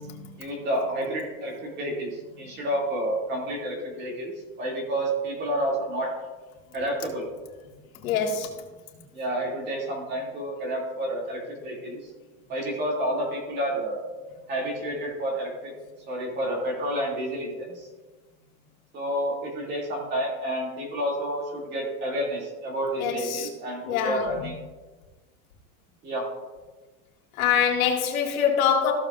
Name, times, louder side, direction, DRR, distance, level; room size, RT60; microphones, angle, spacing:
voice 1, 0.4-6.1 6.7-7.3 9.1-12.1 12.5-14.0 14.5-15.7 16.1-17.9 18.9-24.5 26.0-26.3, right 1 dB, 25° right, -2 dB, 2.6 m, -30 dB
voice 2, 8.0-8.5 23.0-23.5 23.8-24.2 27.4-28.9, left 7 dB, 80° left, 0 dB, 2.2 m, -24 dB
15.0 x 7.3 x 2.5 m, 1.3 s
supercardioid pair, 165°, 42 cm